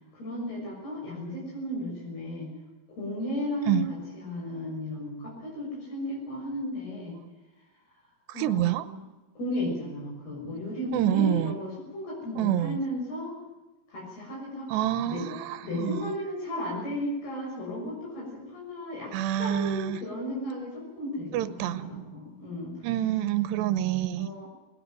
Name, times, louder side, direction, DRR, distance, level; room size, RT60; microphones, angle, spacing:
voice 1, 0.1-2.5 2.9-7.2 8.3-9.0 9.3-13.4 13.9-14.8 15.0-15.2 15.6-22.8 24.2-24.5, left 1 dB, 65° left, -3 dB, 8.5 m, -34 dB
voice 2, 8.4-8.9 10.9-11.6 12.4-12.8 14.7-16.0 19.1-20.0 21.3-22.2 22.8-24.3, right 12 dB, 90° right, 14 dB, 3.1 m, -27 dB
20.5 x 20.0 x 9.2 m, 1.1 s
omnidirectional pair, 4.8 m